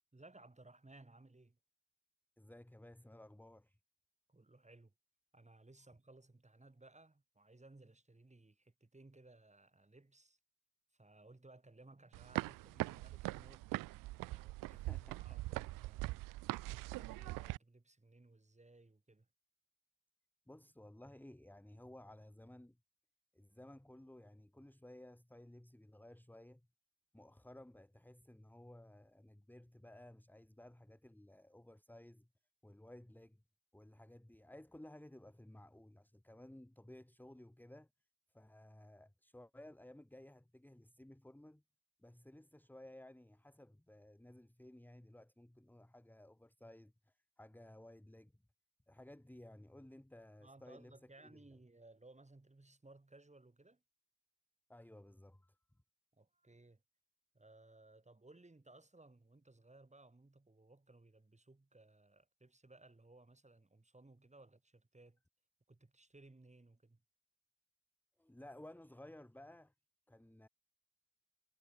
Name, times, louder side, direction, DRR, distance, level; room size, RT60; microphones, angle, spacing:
voice 1, 0.1-1.6 4.3-4.9 5.3-10.4 10.9-13.7 14.3-16.2 16.9-19.3 50.4-53.8 56.1-56.8 57.3-65.2 65.7-67.0, right 2 dB, 20° right, 7.4 m, -61 dB
voice 2, 2.4-3.8 14.7-15.7 16.0-16.1 20.5-22.8 23.3-26.6 27.1-32.3 32.6-33.4 33.7-37.9 38.3-41.6 42.0-48.3 48.9-51.4 54.7-55.6 68.2-69.7 70.1-70.5, left 1 dB, 5° left, 2.2 m, -57 dB
sound 1, 12.1-17.6, right 19 dB, 60° right, 0.5 m, -42 dB
hypercardioid pair, 45°, 36 cm